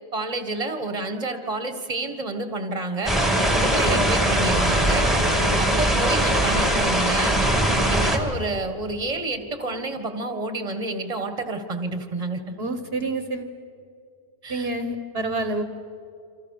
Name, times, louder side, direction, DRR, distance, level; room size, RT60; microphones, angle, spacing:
voice 1, 0.1-3.2 3.5-5.1 5.6-7.4 7.9-12.6 14.4-14.7, right 2 dB, 30° right, 8 dB, 1.7 m, -29 dB
sound 1, 3.0-8.2, right 1 dB, ahead, 2.6 m, -21 dB
voice 2, 12.6-13.5 14.5-15.6, right 2 dB, 60° right, 8 dB, 1.5 m, -28 dB
28.0 x 26.0 x 6.6 m, 2.4 s
omnidirectional pair, 1.2 m